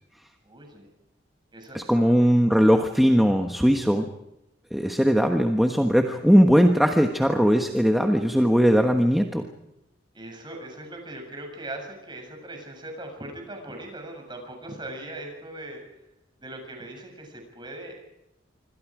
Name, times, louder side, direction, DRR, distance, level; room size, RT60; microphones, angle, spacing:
voice 1, 0.4-0.9 1.5-2.4 10.1-15.8 16.4-18.0, right 1 dB, 25° right, 3 dB, 7.5 m, -40 dB
voice 2, 1.7-4.0 4.7-9.4, equal, ahead, 3 dB, 1.3 m, -19 dB
26.5 x 25.5 x 5.0 m, 0.87 s
head